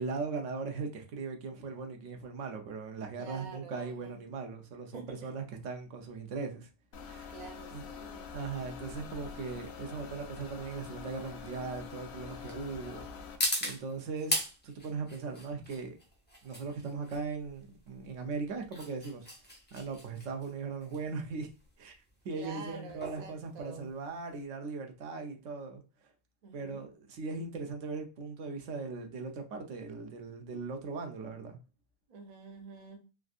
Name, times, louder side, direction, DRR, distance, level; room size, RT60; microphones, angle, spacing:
voice 1, 0.0-6.7 7.0-7.3 7.7-7.8 8.3-13.1 13.3-16.0 16.4-19.3 19.7-21.5 21.8-22.0 22.2-25.8 26.5-31.6, right 4 dB, 70° right, 0.9 m, -39 dB
voice 2, 3.2-4.2 4.9-5.3 7.3-8.3 22.3-23.9 26.4-26.9 32.1-33.0, right 4 dB, 50° right, 0.5 m, -47 dB
sound 1, 6.9-13.4, left 6 dB, 90° left, 1.0 m, -45 dB
sound 2, 12.5-24.4, equal, 10° left, 0.5 m, -40 dB
3.5 x 2.5 x 2.3 m
omnidirectional pair, 1.4 m